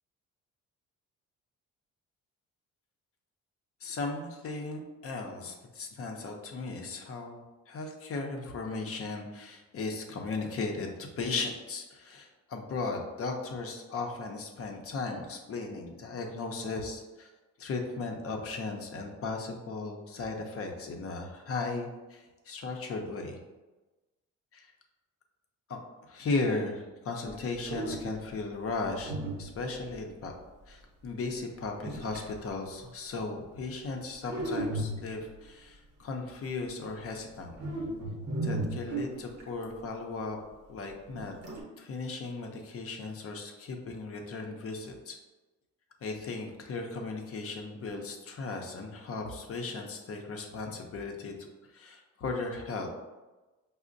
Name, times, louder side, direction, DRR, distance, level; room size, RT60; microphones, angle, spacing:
voice 1, 3.8-17.3 17.6-23.4 24.5-24.7 25.7-29.1 29.4-30.3 30.7-37.5 38.4-40.4 40.7-41.3 41.8-45.2 46.0-52.9, left 3 dB, 50° left, 2 dB, 0.6 m, -36 dB
sound 1, 27.3-27.4 27.7-28.3 29.0-29.9 31.8-32.3 34.3-35.4 37.5-39.6 41.1-41.6, right 1 dB, 55° right, 0.9 m, -35 dB
4.9 x 2.1 x 2.5 m, 1.1 s
cardioid pair, 90°, 30 cm